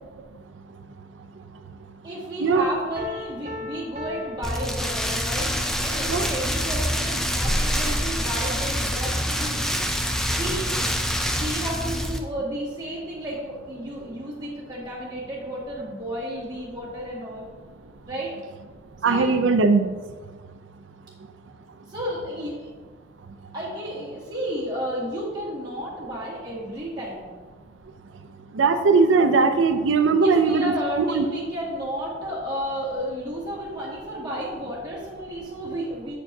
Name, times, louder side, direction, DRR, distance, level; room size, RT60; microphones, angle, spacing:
voice 1, 2.0-9.8 10.4-17.4 18.1-18.4 19.0-19.3 21.9-22.7 23.5-27.3 30.2-36.1, equal, 20° right, -7 dB, 1.8 m, -32 dB
Piano, 3.0-5.5, left 1 dB, 40° right, 0.7 m, -38 dB
Rain, 4.4-12.2, equal, 5° left, 0.3 m, -26 dB
voice 2, 19.0-19.9 28.5-31.2, right 4 dB, 85° right, 8 dB, 0.5 m, -19 dB
8.1 x 4.4 x 2.7 m, 1.4 s
head